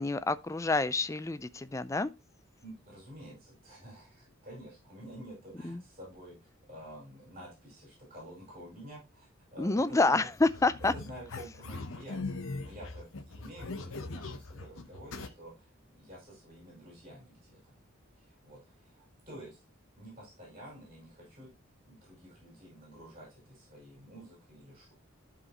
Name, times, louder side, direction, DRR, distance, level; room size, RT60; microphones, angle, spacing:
voice 1, 0.0-2.1 5.6-5.8 9.6-10.9, left 3 dB, 15° left, 0.4 m, -28 dB
voice 2, 2.6-6.4 6.7-10.3 10.8-17.7 18.2-19.6 20.0-21.5 21.8-24.9, equal, 30° right, 5.4 m, -50 dB
sound 1, 10.3-15.3, left 3 dB, 80° left, 0.9 m, -41 dB
13.0 x 4.9 x 3.0 m
head